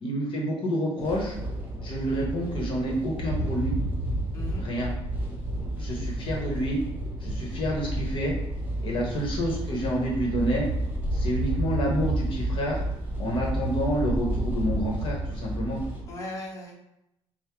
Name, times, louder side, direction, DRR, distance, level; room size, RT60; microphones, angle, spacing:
voice 1, 0.0-1.4 1.8-3.7 4.6-4.9 5.8-6.8 7.2-8.3 8.8-10.7 11.1-12.8 13.2-15.8, equal, 50° left, -1 dB, 1.0 m, -28 dB
sound 1, 1.0-16.0, right 1 dB, 15° right, 1.2 m, -30 dB
voice 2, 4.3-4.6 5.7-5.9 8.8-9.0 16.1-16.8, left 1 dB, 30° left, -3 dB, 1.1 m, -39 dB
5.5 x 2.0 x 4.6 m, 0.84 s
cardioid pair, 140°, 11 cm